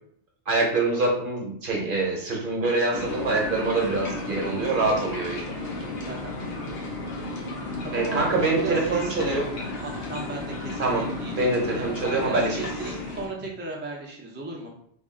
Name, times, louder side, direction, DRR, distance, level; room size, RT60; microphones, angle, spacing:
voice 1, 0.5-5.6 7.9-9.5 10.8-12.6, right 2 dB, 50° right, 0 dB, 0.9 m, -25 dB
sound 1, 2.9-13.3, left 2 dB, 60° left, 0.9 m, -34 dB
voice 2, 6.0-6.4 7.8-9.5 9.8-14.7, right 2 dB, 15° right, -2 dB, 0.4 m, -36 dB
3.5 x 2.4 x 3.6 m, 0.66 s
omnidirectional pair, 1.2 m